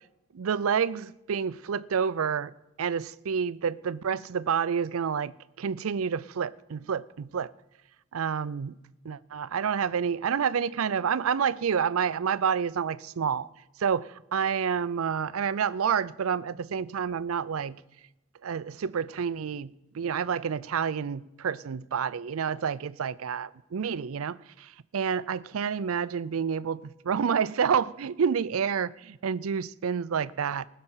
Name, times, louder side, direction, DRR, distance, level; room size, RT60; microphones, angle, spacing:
voice 1, 0.3-2.5 2.8-7.5 8.1-8.8 9.0-13.5 13.8-17.8 18.4-30.7, right 7 dB, 90° right, 0.5 m, -29 dB
19.5 x 6.6 x 5.7 m
head